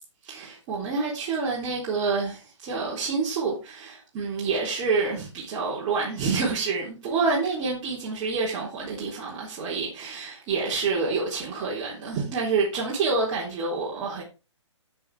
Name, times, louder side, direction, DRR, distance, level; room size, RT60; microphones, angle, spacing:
voice 1, 0.2-14.2, right 4 dB, 30° right, 3.8 m, -28 dB
14.0 x 7.4 x 3.5 m
hypercardioid pair, 140°, 16 cm